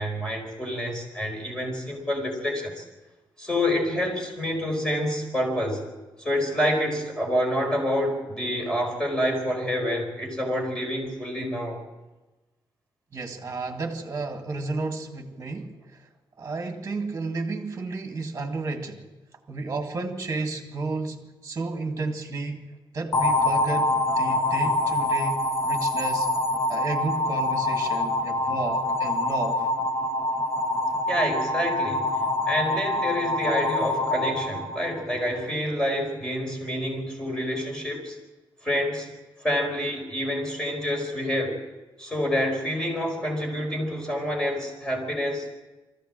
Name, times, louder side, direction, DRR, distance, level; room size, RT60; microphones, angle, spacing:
voice 1, 0.0-2.8 3.4-5.8 6.2-11.8 31.0-32.1 32.5-38.2 38.6-39.1 39.4-41.6 42.0-45.5, equal, 10° left, 1 dB, 4.8 m, -27 dB
voice 2, 13.1-15.8 16.4-19.0 19.5-22.7 22.9-26.3 26.7-29.7, right 3 dB, 30° right, 4 dB, 2.1 m, -32 dB
sound 1, 23.1-35.3, left 2 dB, 35° left, 1.3 m, -25 dB
24.0 x 15.0 x 7.6 m, 1.1 s
wide cardioid pair, 170°, 9 cm